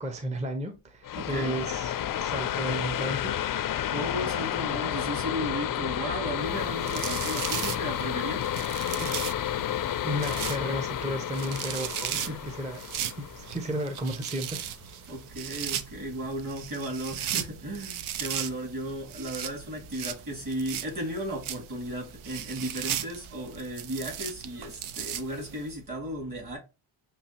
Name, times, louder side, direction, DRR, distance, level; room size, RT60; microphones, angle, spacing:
voice 1, 0.0-1.9 2.2-3.3 8.9-9.1 10.0-12.1 12.6-12.8 13.2-14.7, right 1 dB, 15° right, 0.6 m, -33 dB
sound 1, 1.0-14.4, left 10 dB, 45° left, 0.4 m, -31 dB
voice 2, 1.1-1.5 3.9-8.5 12.1-12.5 15.1-26.6, right 1 dB, 40° right, 2.5 m, -35 dB
sound 2, 6.5-25.7, right 10 dB, 85° right, 0.6 m, -37 dB
6.7 x 2.4 x 2.9 m
cardioid pair, 100°, 47 cm